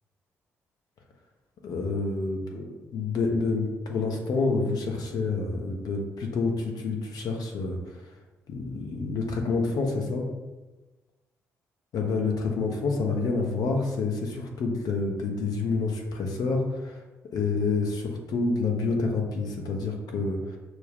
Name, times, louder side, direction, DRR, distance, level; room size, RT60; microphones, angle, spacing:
voice 1, 1.6-7.8 8.5-10.3 11.9-17.0 17.3-20.6, left 3 dB, 60° left, 2 dB, 0.9 m, -28 dB
6.1 x 2.3 x 3.5 m, 1.1 s
hypercardioid pair, 40°, 7 cm